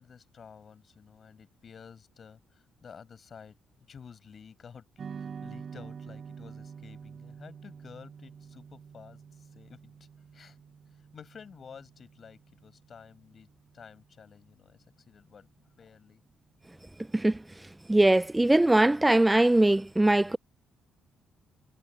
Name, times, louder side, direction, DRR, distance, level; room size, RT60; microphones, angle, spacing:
voice 1, 0.0-10.6 10.9-16.2, left 6 dB, 45° left, 6.4 m, -52 dB
sound 1, 5.0-13.5, right 6 dB, 50° right, 5.8 m, -47 dB
voice 2, 17.9-20.4, right 1 dB, 10° right, 0.4 m, -21 dB
cardioid pair, 90°, 0 cm